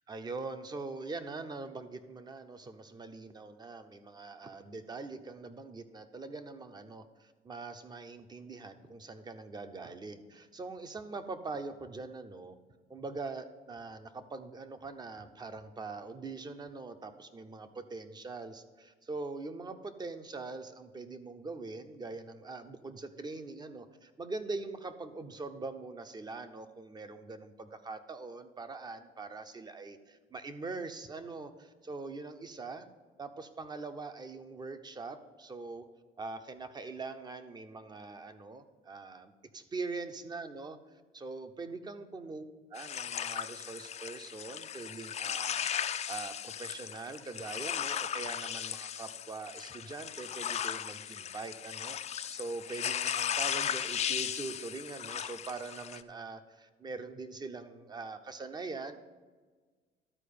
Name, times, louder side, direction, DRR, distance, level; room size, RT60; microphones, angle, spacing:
voice 1, 0.1-12.6 12.9-32.9 33.2-35.9 36.2-40.8 41.1-42.4 42.7-45.7 46.1-59.0, right 3 dB, 25° right, 9 dB, 0.8 m, -43 dB
sound 1, 42.8-56.0, left 9 dB, 40° left, 0.5 m, -36 dB
12.0 x 4.6 x 6.8 m, 1.4 s
cardioid pair, 110°, 17 cm